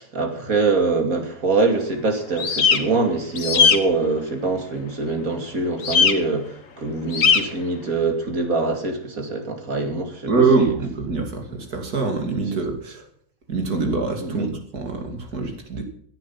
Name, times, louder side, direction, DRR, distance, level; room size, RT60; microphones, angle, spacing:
voice 1, 0.0-10.3 10.6-10.7 12.5-12.6 14.2-14.5, right 3 dB, 65° right, 5 dB, 2.9 m, -24 dB
sound 1, 2.4-2.8 3.4-3.8 5.8-6.1 7.1-7.4, left 6 dB, 60° left, 1.7 m, -17 dB
voice 2, 10.3-13.1 13.5-15.8, right 4 dB, 85° right, 4 dB, 3.2 m, -24 dB
16.5 x 10.5 x 5.8 m, 0.63 s
omnidirectional pair, 1.6 m